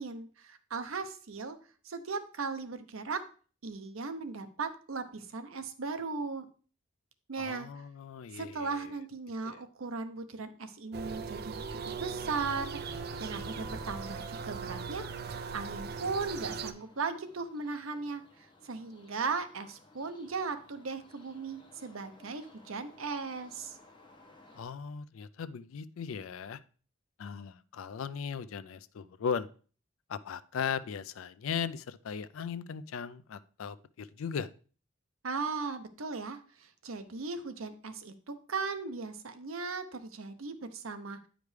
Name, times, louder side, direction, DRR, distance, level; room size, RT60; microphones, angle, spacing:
voice 1, 0.0-1.6 1.8-3.2 3.6-6.5 7.3-7.7 8.3-15.0 15.3-18.2 18.6-23.8 35.2-41.3, right 4 dB, 85° right, 9 dB, 0.8 m, -37 dB
voice 2, 7.4-8.9 9.4-9.6 24.5-26.6 27.2-29.5 30.1-34.5, left 6 dB, 85° left, 16 dB, 0.4 m, -38 dB
sound 1, 10.9-16.7, right 5 dB, 50° right, 0.5 m, -39 dB
sound 2, 12.8-24.6, left 2 dB, 25° left, 1.2 m, -59 dB
9.3 x 5.1 x 3.2 m, 0.40 s
head